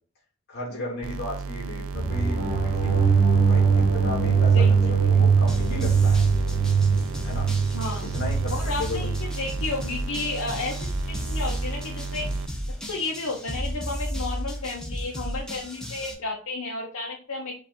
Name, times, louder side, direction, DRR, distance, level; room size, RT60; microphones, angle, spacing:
voice 1, 0.5-3.1 3.4-4.6 4.9-6.3 7.2-7.5 8.0-9.1, left 2 dB, 50° left, -2 dB, 2.1 m, -35 dB
sound 1, 1.0-12.5, right 4 dB, 80° right, 0.4 m, -34 dB
sound 2, 1.9-9.2, right 5 dB, 30° right, 0.9 m, -21 dB
voice 2, 4.5-5.2 7.7-8.1 8.5-12.3 12.9-17.5, left 3 dB, 80° left, -1 dB, 0.8 m, -32 dB
sound 3, 5.5-16.1, equal, 5° left, 0.6 m, -32 dB
4.7 x 2.5 x 4.2 m, 0.41 s
head